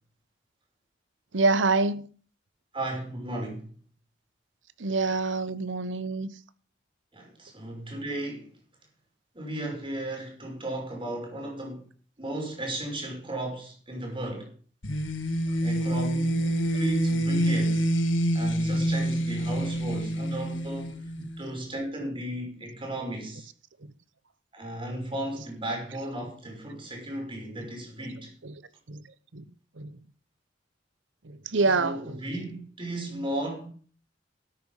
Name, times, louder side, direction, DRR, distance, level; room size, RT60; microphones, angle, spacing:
voice 1, 1.3-2.0 4.8-6.3 28.9-29.0 29.3-29.4 29.8-29.9 31.5-32.0, right 3 dB, 75° right, 1.0 m, -25 dB
voice 2, 2.7-3.7 7.1-8.5 9.3-11.8 12.2-14.5 15.6-17.9 18.3-21.0 21.4-23.5 24.5-28.3 31.8-33.7, right 1 dB, 30° right, 5.6 m, -35 dB
sound 1, 14.8-21.5, right 1 dB, 90° left, 1.7 m, -27 dB
13.0 x 9.4 x 5.6 m
head